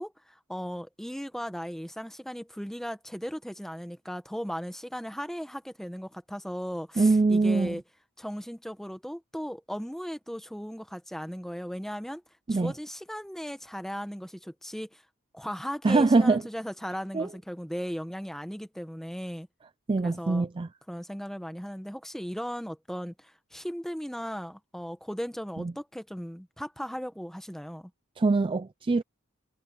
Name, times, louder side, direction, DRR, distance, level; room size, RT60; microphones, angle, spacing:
voice 1, 0.0-7.8 8.2-12.2 12.5-15.0 15.3-19.5 20.0-20.5 20.9-27.9, equal, ahead, 1.0 m, -37 dB
voice 2, 7.0-7.7 12.5-12.7 15.8-16.4 17.1-17.3 19.9-20.7 25.6-25.7 28.2-29.0, right 3 dB, 25° right, 0.3 m, -23 dB
head